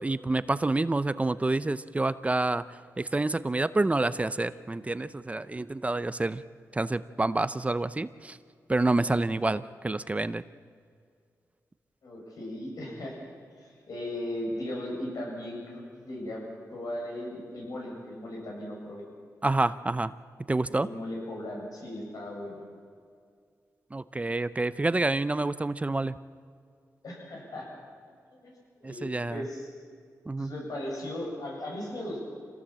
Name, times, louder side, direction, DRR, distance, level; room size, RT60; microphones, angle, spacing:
voice 1, 0.0-6.4 6.7-8.4 8.7-10.4 19.4-20.1 20.5-20.9 23.9-26.2 28.8-29.4 30.3-30.5, right 2 dB, 20° right, 14 dB, 0.6 m, -28 dB
voice 2, 12.0-13.2 13.5-16.4 16.7-19.0 20.6-22.6 27.0-27.7 28.3-28.5 28.8-29.7 30.4-32.2, left 1 dB, 75° left, -2 dB, 7.7 m, -37 dB
26.5 x 17.5 x 7.6 m, 2.2 s
wide cardioid pair, 95°, 6 cm